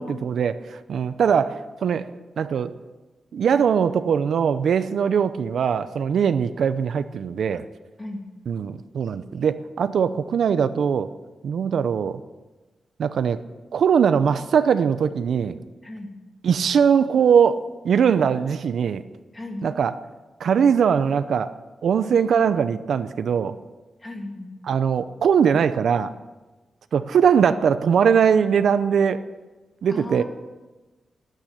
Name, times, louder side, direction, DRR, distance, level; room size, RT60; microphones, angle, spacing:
voice 1, 0.0-2.1 2.4-2.7 3.3-7.6 8.5-11.1 11.4-12.2 13.0-13.4 13.7-15.6 16.4-19.0 19.6-19.9 20.4-21.5 21.8-23.6 24.7-26.1 26.9-29.2 29.8-30.2, right 7 dB, 70° right, 12 dB, 0.6 m, -21 dB
voice 2, 15.8-16.2 19.3-19.7 24.0-24.5 29.9-30.2, left 1 dB, 20° left, 2 dB, 2.7 m, -35 dB
12.5 x 9.2 x 9.9 m, 1.2 s
wide cardioid pair, 140°, 0 cm